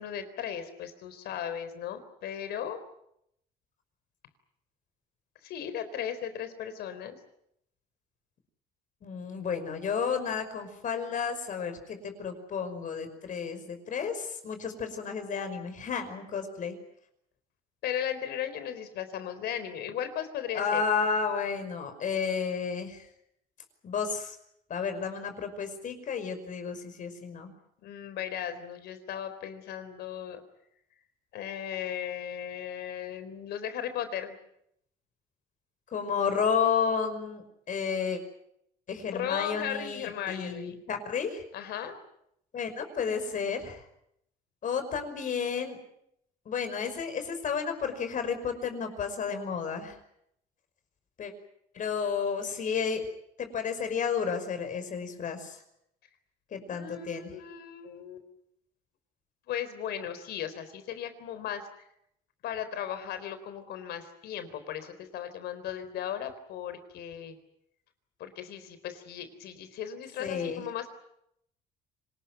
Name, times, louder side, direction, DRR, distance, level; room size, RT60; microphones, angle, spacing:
voice 1, 0.0-2.8 5.4-7.2 17.8-20.8 27.8-30.4 31.3-34.4 39.1-40.8 41.5-42.0 56.7-58.2 59.5-61.7 62.4-67.4 68.2-70.9, left 9 dB, 75° left, 11 dB, 4.1 m, -36 dB
voice 2, 9.0-16.8 20.5-23.1 23.8-24.4 24.7-27.5 35.9-38.2 38.9-41.4 42.5-43.8 44.6-45.8 46.5-50.0 51.2-51.3 51.7-53.0 53.4-55.6 56.5-57.3 70.2-70.6, left 6 dB, 50° left, 7 dB, 5.5 m, -32 dB
26.0 x 20.0 x 9.2 m, 0.77 s
cardioid pair, 110°, 17 cm